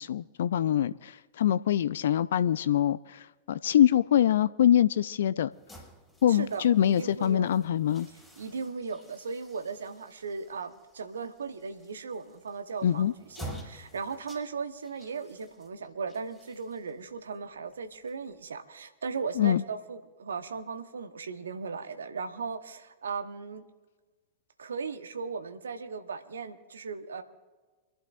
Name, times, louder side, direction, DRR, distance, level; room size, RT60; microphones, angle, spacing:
voice 1, 0.0-5.5 6.2-8.1 12.8-13.1 19.4-19.6, left 10 dB, 65° left, 0.3 m, -24 dB
sound 1, 5.5-18.6, equal, 5° left, 5.5 m, -50 dB
voice 2, 6.3-7.5 8.4-23.6 24.6-27.2, right 5 dB, 75° right, 1.0 m, -37 dB
28.5 x 11.0 x 2.5 m
figure-of-eight pair, 95°, 0 cm